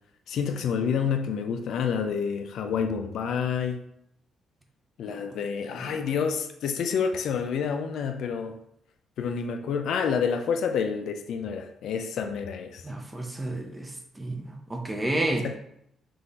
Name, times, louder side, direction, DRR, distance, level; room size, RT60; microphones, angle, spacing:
voice 1, 0.3-3.8 5.0-8.6 9.2-12.8 15.4-15.6, left 6 dB, 70° left, 6 dB, 0.4 m, -28 dB
voice 2, 12.8-15.5, right 1 dB, 15° right, 3 dB, 0.6 m, -31 dB
3.8 x 2.5 x 4.0 m, 0.75 s
cardioid pair, 115°, 0 cm